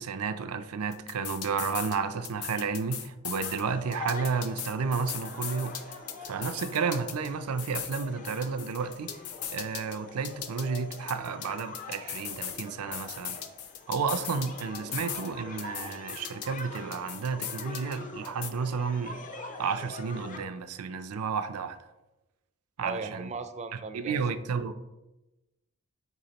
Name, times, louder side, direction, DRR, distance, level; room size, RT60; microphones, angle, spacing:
voice 1, 0.0-9.2 9.5-13.4 13.9-19.2 19.6-21.8 22.8-23.3 23.9-24.7, right 5 dB, 85° right, 0.5 m, -32 dB
sound 1, 0.9-2.0 2.2-3.6 3.9-7.3 7.6-10.0 10.2-12.6 12.9-15.3 15.6-18.0 18.2-18.5, left 9 dB, 80° left, 0.6 m, -38 dB
sound 2, 3.4-20.4, left 2 dB, 40° left, 0.7 m, -44 dB
voice 2, 22.8-24.4, right 4 dB, 30° right, 0.4 m, -38 dB
8.1 x 4.7 x 2.9 m
head